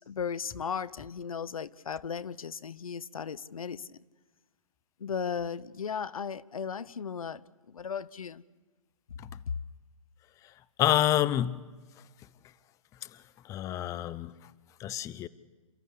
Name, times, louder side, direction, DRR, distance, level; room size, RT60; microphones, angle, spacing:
voice 1, 0.0-3.9 5.0-7.4 7.7-8.4, left 6 dB, 85° left, 0.7 m, -36 dB
voice 2, 10.8-11.6 13.5-14.3 14.8-15.3, left 12 dB, 20° left, 0.6 m, -27 dB
29.0 x 14.0 x 8.4 m
hypercardioid pair, 130°, 18 cm